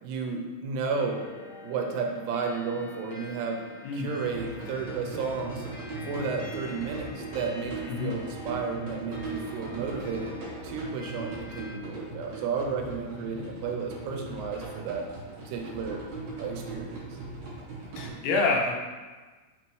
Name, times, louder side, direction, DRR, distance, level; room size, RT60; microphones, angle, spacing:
voice 1, 0.0-1.3 1.6-3.7 3.9-5.7 6.0-10.4 10.6-15.1 15.5-16.0 16.4-17.2, right 5 dB, 80° right, 2 dB, 2.7 m, -33 dB
sound 1, 0.8-11.8, left 3 dB, 65° left, 2.4 m, -46 dB
sound 2, 4.2-18.1, right 3 dB, 55° right, 2.3 m, -39 dB
voice 2, 18.0-18.8, left 3 dB, 85° left, 1 dB, 2.7 m, -27 dB
6.0 x 4.1 x 4.6 m, 1.3 s
omnidirectional pair, 4.9 m